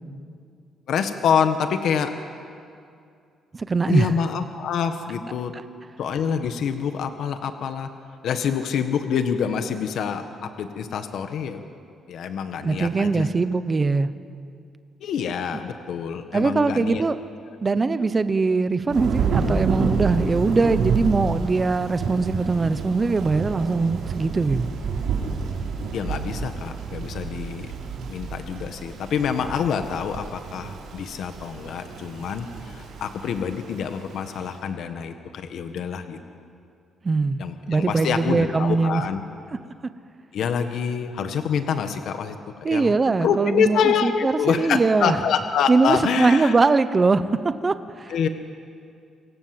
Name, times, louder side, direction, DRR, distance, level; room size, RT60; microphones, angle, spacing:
voice 1, 0.9-2.1 3.9-5.5 6.0-7.9 8.2-11.6 12.1-13.3 15.0-17.0 25.9-27.7 28.1-36.2 37.4-39.2 40.3-42.4 42.7-46.6 48.1-48.3, left 7 dB, 60° left, 7 dB, 1.6 m, -26 dB
voice 2, 3.5-4.1 12.6-14.1 16.3-17.2 17.6-24.7 37.0-39.0 42.6-45.2 45.7-47.2 47.6-48.1, right 4 dB, 20° right, 12 dB, 0.9 m, -21 dB
Thunder / Rain, 18.9-34.5, right 5 dB, 70° right, 5.6 m, -29 dB
28.0 x 25.0 x 7.9 m, 2.4 s
cardioid pair, 160°, 0 cm